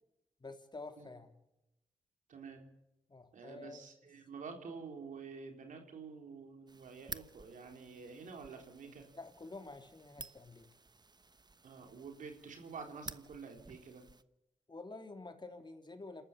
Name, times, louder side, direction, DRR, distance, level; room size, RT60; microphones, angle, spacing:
voice 1, 0.4-1.3 3.1-3.8 9.1-10.7 14.7-16.2, left 3 dB, 35° left, 6 dB, 3.4 m, -49 dB
voice 2, 2.3-2.6 3.3-9.1 11.6-14.0, right 5 dB, 80° right, 4 dB, 3.8 m, -49 dB
sound 1, 6.7-14.2, right 3 dB, 35° right, 1.1 m, -53 dB
28.0 x 13.0 x 7.2 m, 0.89 s
supercardioid pair, 45°, 13 cm